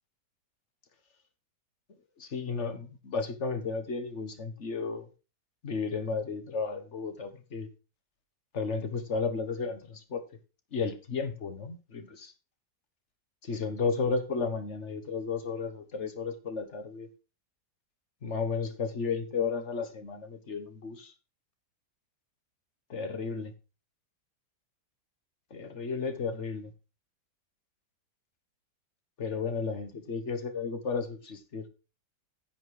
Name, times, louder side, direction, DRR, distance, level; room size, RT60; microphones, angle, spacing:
voice 1, 2.2-5.1 5.6-7.7 8.5-10.2 10.7-12.3 13.4-17.1 18.2-21.1 22.9-23.5 25.5-26.7 29.2-31.7, left 4 dB, 45° left, 1.6 m, -33 dB
10.5 x 6.2 x 4.8 m
omnidirectional pair, 1.8 m